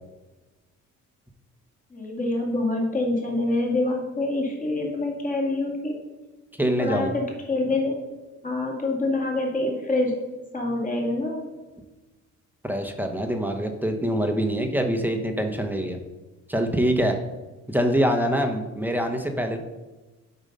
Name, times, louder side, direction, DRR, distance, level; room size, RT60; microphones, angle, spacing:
voice 1, 1.9-6.0 6.8-8.0 8.4-10.1 10.5-11.5, left 2 dB, 25° left, -1 dB, 2.1 m, -26 dB
voice 2, 6.6-7.1 12.6-16.0 16.5-17.2 17.7-19.6, equal, 5° right, 4 dB, 0.9 m, -24 dB
7.1 x 5.4 x 5.3 m, 1.2 s
cardioid pair, 90°, 30 cm